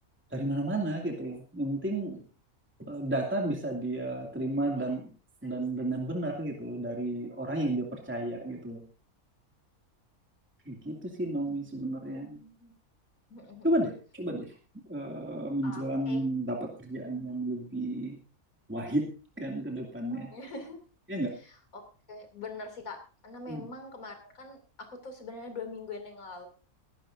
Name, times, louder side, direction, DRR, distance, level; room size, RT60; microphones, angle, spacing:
voice 1, 0.3-2.2 2.9-5.1 5.4-8.8 10.7-12.4 13.6-14.5 14.9-18.2 18.7-19.1 19.4-20.3 21.1-21.3 23.5-23.7, right 1 dB, 10° right, 0 dB, 2.4 m, -32 dB
voice 2, 11.5-12.7 13.3-13.7 15.6-16.2 20.3-20.8 21.4-26.5, left 3 dB, 65° left, 5 dB, 3.2 m, -44 dB
21.5 x 11.0 x 2.6 m, 0.36 s
omnidirectional pair, 1.6 m